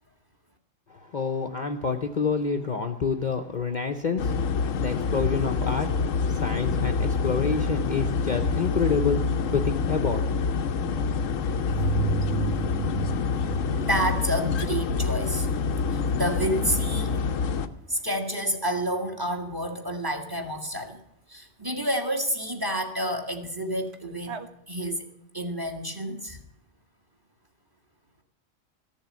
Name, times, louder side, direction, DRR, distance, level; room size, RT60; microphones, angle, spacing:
voice 1, 0.9-9.2 9.5-10.3, left 5 dB, 40° left, 5 dB, 0.9 m, -28 dB
sound 1, 4.2-17.7, left 5 dB, 85° left, 1.2 m, -26 dB
sound 2, 6.2-17.7 23.9-24.0 24.3-24.5, right 7 dB, 60° right, 1.2 m, -37 dB
voice 2, 13.8-15.5 15.9-17.5 17.9-21.0 21.3-24.4 24.7-25.0 25.3-26.4, right 1 dB, 15° right, 6 dB, 1.6 m, -29 dB
14.0 x 7.3 x 9.4 m, 0.76 s
omnidirectional pair, 1.3 m